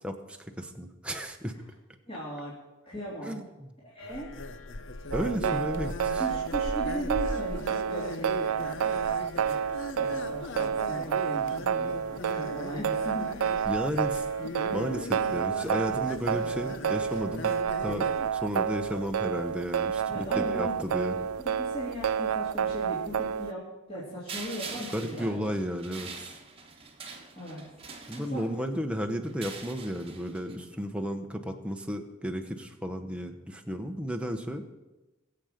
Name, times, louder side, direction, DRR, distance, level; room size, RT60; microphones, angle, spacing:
voice 1, 0.0-1.5 3.2-3.7 5.1-6.2 13.7-14.3 14.7-17.5 17.8-21.2 24.9-26.3 28.1-34.6, equal, 5° right, 4 dB, 0.9 m, -33 dB
voice 2, 2.1-2.5 2.8-3.4 3.9-4.3 6.1-12.0 12.3-13.6 15.4-15.5 20.1-20.8 21.4-23.6 23.9-25.5 27.3-27.6 28.2-28.5 30.5-30.6, equal, 25° left, -8 dB, 3.1 m, -38 dB
sound 1, 4.0-18.3, left 2 dB, 60° left, 0.8 m, -39 dB
sound 2, 5.1-23.5, right 8 dB, 75° right, 0.4 m, -30 dB
sound 3, 24.3-28.7 29.3-30.6, right 4 dB, 25° right, 1.3 m, -43 dB
22.0 x 7.7 x 5.1 m, 1.1 s
head